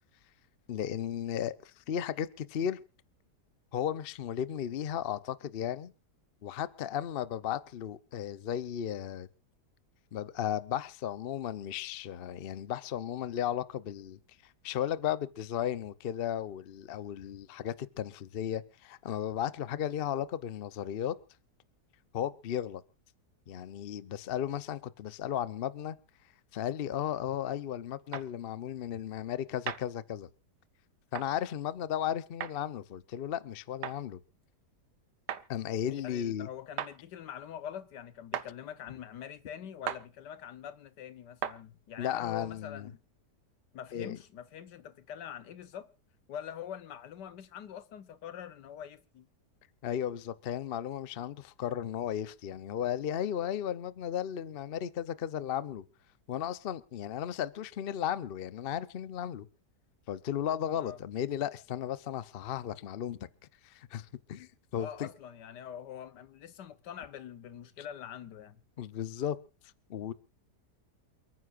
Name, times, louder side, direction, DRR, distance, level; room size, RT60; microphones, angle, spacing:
voice 1, 0.7-2.8 3.7-5.9 6.4-9.3 10.1-21.1 22.1-22.8 23.5-26.0 26.5-30.3 31.1-34.2 35.5-36.5 42.0-42.9 43.9-44.2 49.8-55.8 56.3-59.5 60.1-63.3 63.6-65.1 68.8-69.4 69.9-70.1, left 10 dB, 50° left, 0.7 m, -35 dB
sound 1, 28.1-28.3 29.7-29.9 31.1-31.3 32.4-32.6 33.8-34.0 35.3-35.5 36.8-36.9 38.3-38.5 39.9-40.0 41.4-41.6, right 10 dB, 90° right, 1.5 m, -35 dB
voice 2, 35.9-43.0 43.7-45.9 46.3-49.3 60.8-61.0 64.8-68.6, left 9 dB, 85° left, 1.6 m, -44 dB
28.5 x 9.6 x 2.5 m
omnidirectional pair, 1.8 m